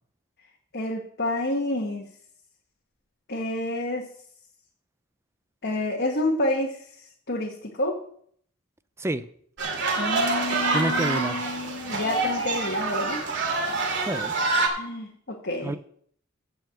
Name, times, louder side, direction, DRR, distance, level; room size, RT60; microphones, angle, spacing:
voice 1, 0.7-2.1 3.3-4.0 5.6-6.8 7.3-8.0 10.0-13.2 14.7-15.7, left 1 dB, 55° left, -1 dB, 1.5 m, -29 dB
sound 1, 9.6-14.7, right 3 dB, 60° right, 2.6 m, -26 dB
voice 2, 10.7-11.4 14.0-14.3 15.6-15.8, right 1 dB, 15° right, 13 dB, 0.5 m, -28 dB
13.5 x 4.7 x 7.6 m, 0.63 s
head